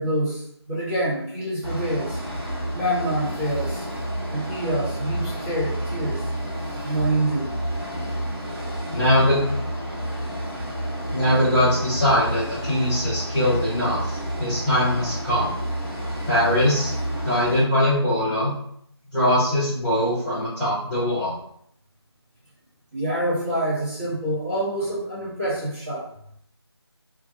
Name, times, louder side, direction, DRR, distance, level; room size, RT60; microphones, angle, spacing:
voice 1, 0.0-2.2 2.7-3.8 4.3-6.2 6.8-7.5 22.9-26.1, right 1 dB, 25° right, -9 dB, 1.1 m, -26 dB
sound 1, 1.6-17.6, equal, 60° right, 1.1 m, -30 dB
voice 2, 8.9-9.4 11.1-15.5 16.3-16.9 17.2-18.5 19.1-21.3, left 1 dB, 5° left, -25 dB, 0.5 m, -21 dB
2.5 x 2.2 x 2.6 m, 0.67 s
figure-of-eight pair, 165°, 14 cm